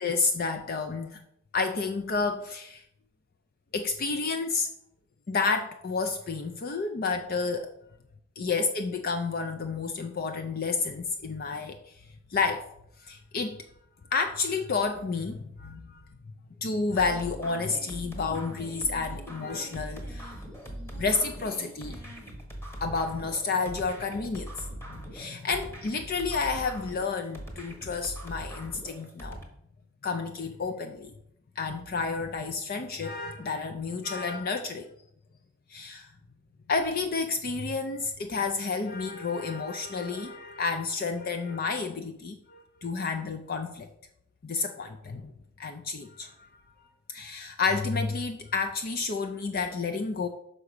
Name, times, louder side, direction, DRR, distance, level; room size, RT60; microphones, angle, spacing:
voice 1, 0.0-1.2 1.5-2.8 3.7-4.7 5.3-7.7 8.4-11.8 12.3-12.6 13.0-13.6 14.1-16.0 16.6-20.3 21.0-22.0 22.8-29.4 30.0-31.1 31.6-34.9 35.7-36.1 36.7-43.9 44.4-45.3 45.6-46.3 47.1-50.3, left 4 dB, 45° left, 7 dB, 0.5 m, -30 dB
sound 1, 17.0-29.4, right 1 dB, 10° left, 1.2 m, -41 dB
5.8 x 5.0 x 6.5 m, 0.75 s
head